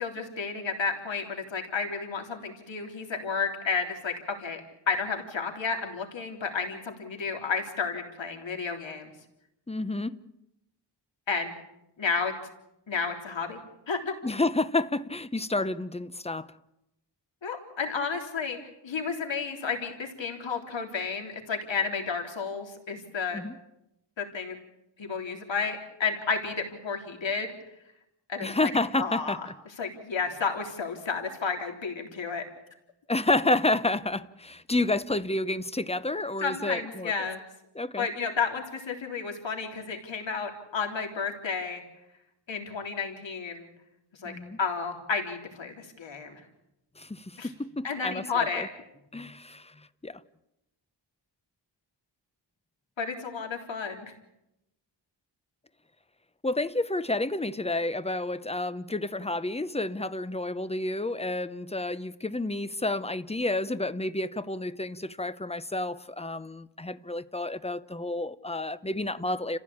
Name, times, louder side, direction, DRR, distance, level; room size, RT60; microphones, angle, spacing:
voice 1, 0.0-4.6 4.9-9.1 11.3-11.5 12.0-12.3 12.9-13.6 13.9-14.1 17.4-18.6 18.8-23.4 24.2-24.6 25.0-27.5 28.3-28.7 29.0-29.4 29.8-32.4 36.4-37.4 38.0-41.8 42.5-43.7 44.2-44.3 44.6-46.4 47.4-47.5 47.8-48.7 53.0-54.1, left 5 dB, 85° left, 3.6 m, -31 dB
voice 2, 9.7-10.2 14.2-16.5 23.3-23.6 28.4-29.4 33.1-37.1 37.7-38.1 44.2-44.6 47.0-48.7 49.1-49.7 50.0-50.2 56.4-69.6, left 2 dB, 15° left, 0.8 m, -30 dB
29.5 x 15.5 x 8.6 m
wide cardioid pair, 105°, 44 cm